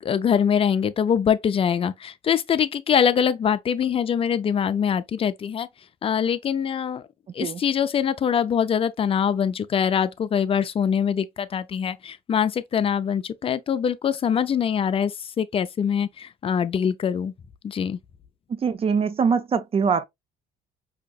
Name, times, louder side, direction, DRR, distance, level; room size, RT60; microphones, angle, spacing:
voice 1, 0.0-5.7 6.0-7.0 7.3-17.3 17.6-18.0, left 8 dB, 35° left, 0.4 m, -23 dB
voice 2, 18.5-20.0, right 6 dB, 35° right, 0.5 m, -23 dB
5.0 x 2.7 x 2.3 m
cardioid pair, 110°, 17 cm